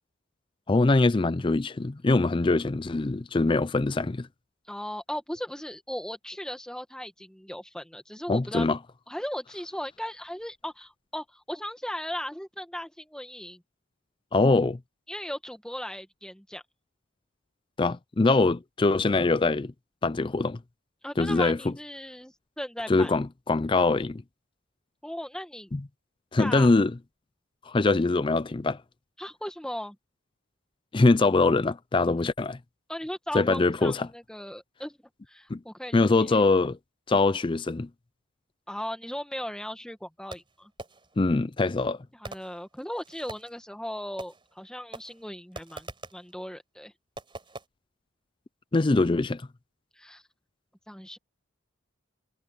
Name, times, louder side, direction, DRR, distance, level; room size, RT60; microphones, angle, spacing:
voice 1, 0.7-4.3 8.3-8.8 14.3-14.8 17.8-19.7 20.0-20.6 21.2-21.7 22.9-24.2 25.7-25.8 26.3-26.9 27.7-28.8 30.9-32.6 33.3-34.1 35.5-35.6 35.9-36.8 37.1-37.9 41.2-42.0 48.7-49.4, left 3 dB, 25° left, 0.4 m, -23 dB
voice 2, 4.7-8.7 9.1-13.6 15.1-16.6 21.0-23.2 25.0-25.7 26.4-26.7 29.2-29.9 32.9-35.0 35.3-36.4 38.7-40.7 42.2-46.9 50.0-50.2 50.9-51.2, equal, 5° left, 1.7 m, -37 dB
Fireworks, 40.3-41.3 42.2-43.6 44.2-44.7 44.9-46.3 47.2-47.7, right 2 dB, 25° right, 4.7 m, -44 dB
head